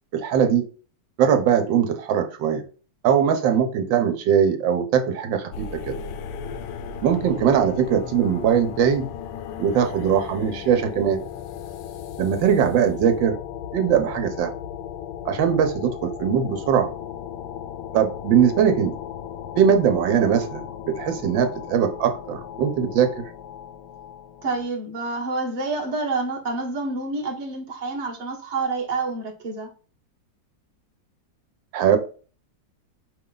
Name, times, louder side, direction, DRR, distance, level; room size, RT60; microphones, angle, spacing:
voice 1, 0.1-0.6 1.2-2.6 3.0-5.9 7.0-9.1 9.6-11.2 12.2-13.3 13.7-14.5 15.2-16.9 17.9-18.9 19.6-23.3 31.7-32.0, right 8 dB, 85° right, 1.4 m, -21 dB
sound 1, 5.5-24.7, left 8 dB, 75° left, 1.1 m, -36 dB
voice 2, 24.4-29.7, right 3 dB, 30° right, 1.0 m, -28 dB
5.2 x 2.3 x 3.7 m
omnidirectional pair, 2.0 m